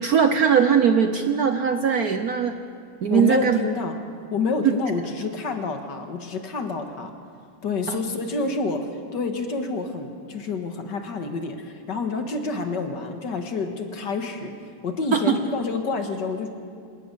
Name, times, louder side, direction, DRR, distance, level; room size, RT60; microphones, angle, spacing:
voice 1, 0.0-2.5 3.0-3.6 4.6-4.7 7.9-8.0 15.1-15.4, right 7 dB, 60° right, 7 dB, 1.1 m, -20 dB
voice 2, 3.1-4.0 4.3-7.1 7.6-14.5 14.8-16.5, left 4 dB, 55° left, 5 dB, 2.2 m, -28 dB
26.5 x 18.5 x 6.9 m, 2.3 s
omnidirectional pair, 2.3 m